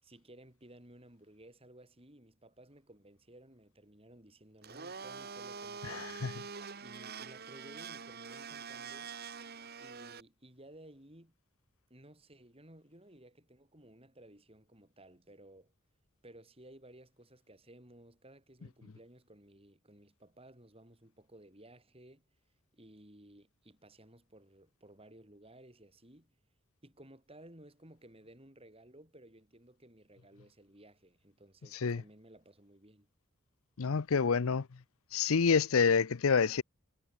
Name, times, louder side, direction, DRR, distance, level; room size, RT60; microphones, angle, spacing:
voice 1, 0.0-6.1 6.8-9.2 9.8-11.3 11.9-15.7 16.2-22.2 22.7-26.3 26.8-33.1, right 1 dB, 25° right, 6.0 m, -57 dB
Domestic sounds home sounds, 4.6-10.2, right 5 dB, 50° right, 1.7 m, -45 dB
voice 2, 5.9-6.3 31.8-32.0 33.8-34.7 35.1-36.6, left 5 dB, 80° left, 0.6 m, -28 dB
head